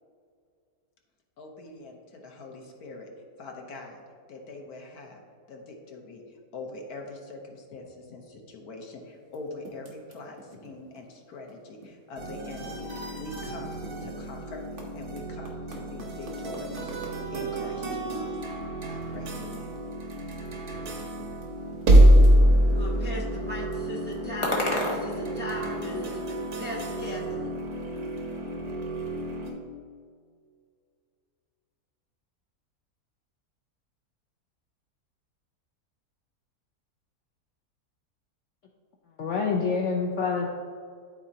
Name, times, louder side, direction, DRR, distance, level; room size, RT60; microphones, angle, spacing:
voice 1, 1.4-3.1 3.4-4.0 4.3-14.6 14.9-18.4 18.9-19.8, left 2 dB, 80° left, 1.5 m, -43 dB
Typing, 9.2-12.0 12.3-18.2 18.6-18.7 19.0-24.1 24.4-26.9, right 1 dB, 40° right, 1.2 m, -49 dB
sound 1, 12.2-29.5, right 1 dB, 85° right, 1.6 m, -26 dB
sound 2, 18.8-26.0, left 1 dB, 20° left, 1.0 m, -37 dB
voice 2, 22.7-27.5, equal, 10° right, 0.9 m, -37 dB
voice 3, 39.2-40.5, left 5 dB, 60° left, 0.9 m, -26 dB
12.5 x 4.2 x 2.8 m
omnidirectional pair, 1.6 m